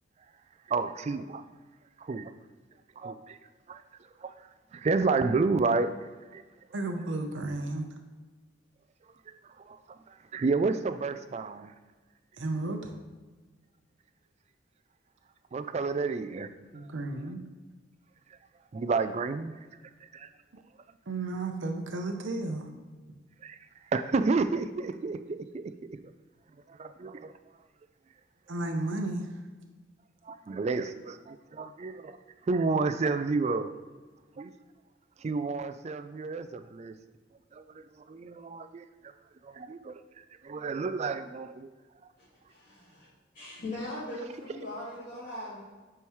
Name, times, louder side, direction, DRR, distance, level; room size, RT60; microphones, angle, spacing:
voice 1, 0.7-1.4 2.0-2.3 3.0-3.4 3.7-3.8 4.2-6.4 9.3-11.7 15.5-16.5 18.7-19.5 20.1-20.3 23.4-23.6 23.9-26.0 26.7-27.3 30.2-33.7 34.4-34.5 35.2-37.0 37.5-38.8 39.4-41.7 42.0-42.1, right 4 dB, 35° right, 10 dB, 0.3 m, -31 dB
voice 2, 6.7-7.9 12.4-12.9 16.7-17.4 21.1-22.7 28.5-29.2, right 2 dB, 75° right, 4 dB, 0.7 m, -33 dB
voice 3, 42.2-43.1 43.3-45.6, left 1 dB, 45° left, -11 dB, 2.2 m, -40 dB
8.7 x 4.7 x 3.1 m, 1.3 s
head